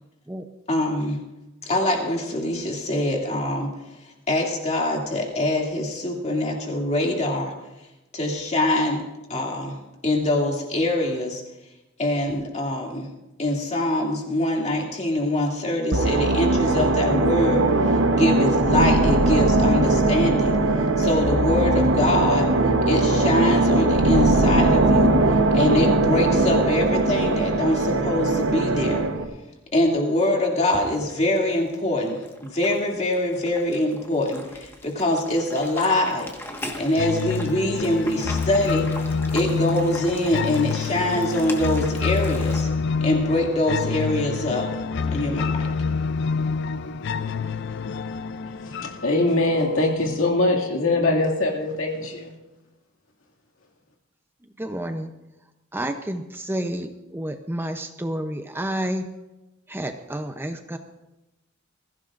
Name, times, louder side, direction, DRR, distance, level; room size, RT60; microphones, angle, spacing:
voice 1, 0.7-1.2 1.6-3.7 4.3-7.5 8.1-9.0 9.3-9.7 10.0-11.4 12.0-13.1 13.4-17.6 18.1-22.5 22.9-25.1 25.5-29.0 29.7-36.3 36.6-38.9 39.3-42.7 43.0-44.7 45.1-45.5, left 1 dB, 35° left, -1 dB, 2.6 m, -24 dB
sound 1, 15.9-29.2, right 2 dB, 65° right, 1.0 m, -20 dB
sound 2, 30.6-42.6, left 1 dB, 10° left, 1.5 m, -40 dB
sound 3, 37.0-49.9, left 5 dB, 60° left, 0.4 m, -27 dB
voice 2, 48.6-52.3, left 2 dB, 85° left, 1 dB, 2.2 m, -22 dB
voice 3, 54.6-55.1 55.7-59.1 59.7-60.8, right 1 dB, 10° right, 6 dB, 0.6 m, -30 dB
21.0 x 15.5 x 2.5 m, 1.0 s
head